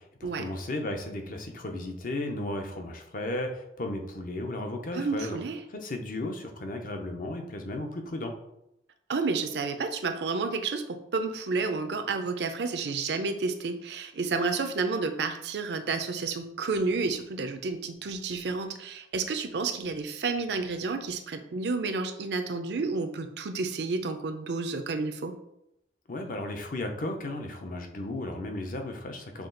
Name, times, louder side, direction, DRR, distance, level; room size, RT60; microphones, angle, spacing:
voice 1, 0.0-5.4 5.7-8.3 26.1-29.5, left 1 dB, 50° left, 4 dB, 0.6 m, -35 dB
voice 2, 4.9-5.6 9.1-25.3, right 4 dB, 70° right, 8 dB, 0.5 m, -30 dB
5.9 x 2.3 x 3.8 m, 0.83 s
head